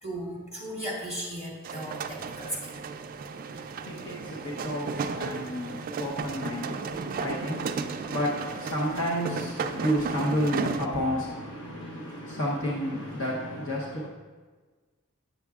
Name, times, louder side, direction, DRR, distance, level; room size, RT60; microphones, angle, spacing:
voice 1, 0.0-2.8, equal, 30° left, -4 dB, 2.0 m, -36 dB
sound 1, 1.6-10.9, right 5 dB, 40° right, 0.3 m, -34 dB
voice 2, 3.3-14.1, equal, 65° left, -4 dB, 0.9 m, -31 dB
8.9 x 7.0 x 2.3 m, 1.4 s
head